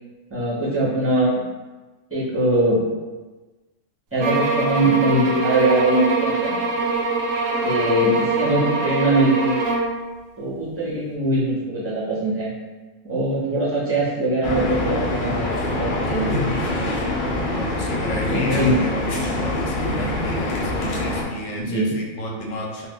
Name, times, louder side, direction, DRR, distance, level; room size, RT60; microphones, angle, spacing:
voice 1, 0.3-1.4 2.1-2.8 4.1-6.5 7.6-9.6 10.4-12.5 13.0-15.5 15.8-16.3 18.2-18.7 21.6-21.9, right 1 dB, 10° right, -8 dB, 0.8 m, -21 dB
sound 1, 4.2-10.0, right 3 dB, 90° right, 1.0 m, -24 dB
sound 2, 14.4-21.2, left 1 dB, 60° left, 0.5 m, -24 dB
voice 2, 17.5-22.9, equal, 85° left, -1 dB, 1.0 m, -32 dB
2.5 x 2.3 x 3.6 m, 1.2 s
omnidirectional pair, 1.3 m